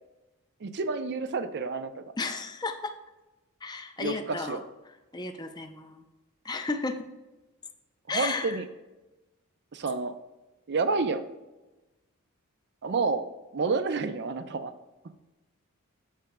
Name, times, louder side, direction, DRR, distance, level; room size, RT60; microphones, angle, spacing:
voice 1, 0.6-2.0 4.0-4.6 8.1-8.7 9.7-10.1 10.7-11.2 12.8-13.3 13.5-14.7, right 4 dB, 50° right, 10 dB, 0.5 m, -29 dB
voice 2, 2.2-2.9 3.6-4.6 5.1-6.0 6.4-7.0 8.1-8.6, left 3 dB, 20° left, 6 dB, 0.5 m, -33 dB
14.0 x 5.1 x 2.2 m, 1.1 s
head